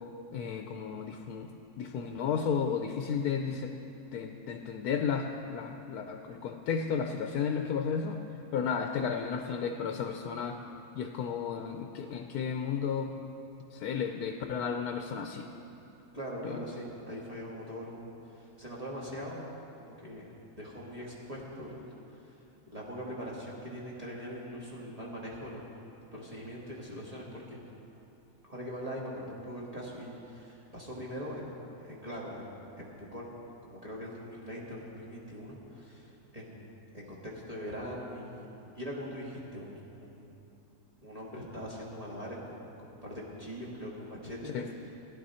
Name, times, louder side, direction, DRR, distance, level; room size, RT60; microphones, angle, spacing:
voice 1, 0.3-1.5 1.8-3.7 4.1-8.2 8.5-10.6 11.0-13.1 13.7-15.5 16.4-16.6 44.4-44.7, left 6 dB, 80° left, 5 dB, 1.1 m, -33 dB
voice 2, 16.1-19.4 19.8-20.3 20.6-22.4 22.7-25.6 26.1-27.6 28.4-33.4 33.6-36.7 36.9-38.5 38.7-40.4 41.0-44.5, equal, 25° right, -6 dB, 1.6 m, -42 dB
16.0 x 10.5 x 4.3 m, 2.9 s
omnidirectional pair, 1.6 m